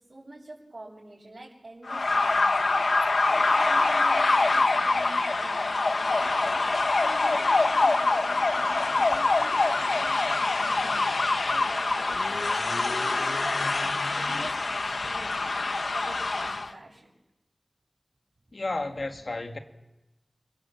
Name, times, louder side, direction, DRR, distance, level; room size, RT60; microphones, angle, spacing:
voice 1, 0.1-8.2 8.5-17.1 18.7-19.2, right 2 dB, 55° right, 7.4 m, -45 dB
sound 1, 1.9-16.7, left 3 dB, 85° left, 1.2 m, -25 dB
voice 2, 18.5-19.6, left 2 dB, 70° left, 2.4 m, -32 dB
29.5 x 22.0 x 7.7 m
wide cardioid pair, 40°, 0 cm